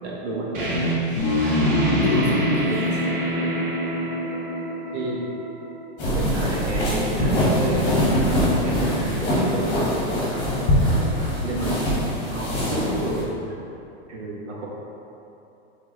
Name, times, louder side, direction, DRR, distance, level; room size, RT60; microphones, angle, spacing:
voice 1, 0.0-0.5 4.9-5.2 6.1-9.8 11.4-11.8 12.3-13.3 14.1-14.7, right 2 dB, 85° right, -4 dB, 1.1 m, -30 dB
sound 1, 0.5-6.0, right 1 dB, 55° right, 1.0 m, -27 dB
sound 2, 1.2-4.3, left 2 dB, 50° left, 0.7 m, -24 dB
voice 2, 1.4-3.2 10.8-11.0, equal, 30° right, -4 dB, 0.5 m, -30 dB
sound 3, 6.0-13.2, equal, 25° left, 1.2 m, -23 dB
4.8 x 3.5 x 3.0 m, 2.8 s
supercardioid pair, 170°, 33 cm